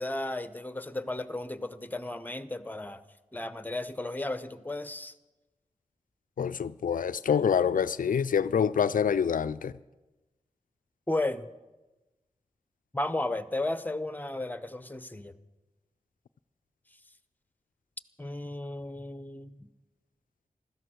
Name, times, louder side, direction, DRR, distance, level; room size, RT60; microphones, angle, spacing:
voice 1, 0.0-3.0 3.3-5.1 11.1-11.5 12.9-15.3 18.2-19.5, left 2 dB, 10° left, 1.0 m, -34 dB
voice 2, 6.4-9.7, left 7 dB, 75° left, 0.4 m, -26 dB
16.0 x 13.0 x 6.3 m
cardioid pair, 40°, 14 cm